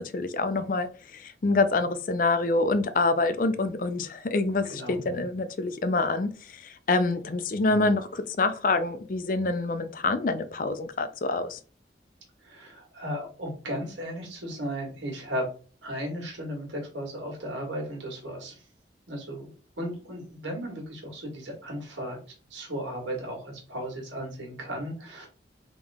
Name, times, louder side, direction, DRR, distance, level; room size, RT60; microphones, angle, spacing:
voice 1, 0.1-11.6, left 3 dB, 45° left, 0.4 m, -26 dB
voice 2, 12.4-15.5 15.8-18.6 19.1-19.5 19.8-22.2 22.5-25.3, equal, 90° right, 1.8 m, -35 dB
3.6 x 3.0 x 3.5 m
head